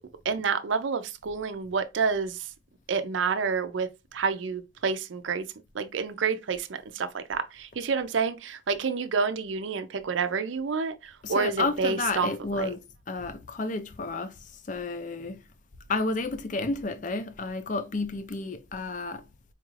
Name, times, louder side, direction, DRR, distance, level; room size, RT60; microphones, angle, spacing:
voice 1, 0.3-2.4 2.9-5.4 5.7-12.7, right 5 dB, 75° right, 0.5 m, -29 dB
voice 2, 11.2-12.8 13.1-14.4 14.7-15.4 15.9-19.2, left 3 dB, 40° left, 0.4 m, -31 dB
4.3 x 2.4 x 3.1 m
head